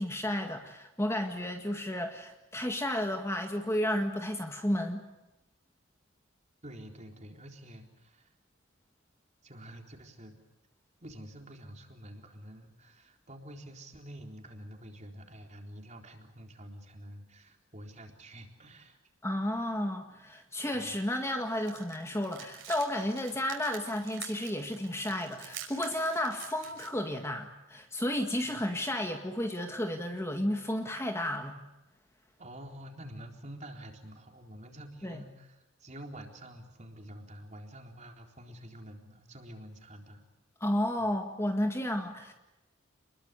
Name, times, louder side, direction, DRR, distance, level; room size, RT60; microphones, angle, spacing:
voice 1, 0.0-5.0 19.2-31.6 35.0-35.2 40.6-42.3, left 1 dB, 15° left, 4 dB, 1.9 m, -32 dB
voice 2, 6.6-8.3 9.4-10.4 11.0-19.0 20.7-21.0 28.4-28.6 32.4-40.2 41.0-41.1, right 1 dB, 35° right, 3 dB, 4.0 m, -48 dB
sound 1, 21.5-26.9, right 9 dB, 65° right, 5.5 m, -47 dB
29.0 x 21.5 x 8.3 m, 0.98 s
head